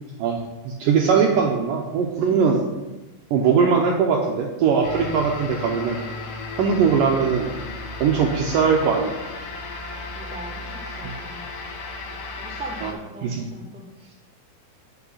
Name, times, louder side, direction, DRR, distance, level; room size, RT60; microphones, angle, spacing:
voice 1, 0.6-2.6 3.3-6.0 6.6-7.5 8.0-9.2 11.0-11.1 12.8-12.9 13.2-13.5, right 6 dB, 75° right, 0 dB, 2.1 m, -20 dB
sound 1, 4.8-12.9, left 2 dB, 70° left, 2.8 m, -34 dB
voice 2, 10.1-11.4 12.4-14.1, right 2 dB, 5° right, -7 dB, 1.4 m, -40 dB
8.6 x 5.9 x 5.6 m, 1.1 s
omnidirectional pair, 4.6 m